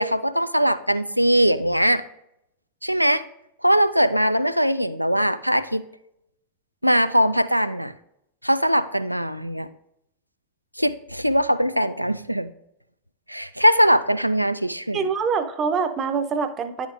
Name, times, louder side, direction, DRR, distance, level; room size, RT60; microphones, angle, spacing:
voice 1, 0.0-2.0 2.8-3.2 3.6-5.8 6.8-7.9 8.4-9.7 10.8-12.5 13.3-15.0, equal, 90° right, 12 dB, 0.3 m, -21 dB
voice 2, 14.9-16.9, right 5 dB, 25° right, 8 dB, 0.7 m, -25 dB
10.5 x 5.0 x 2.4 m, 0.78 s
figure-of-eight pair, 90°, 0 cm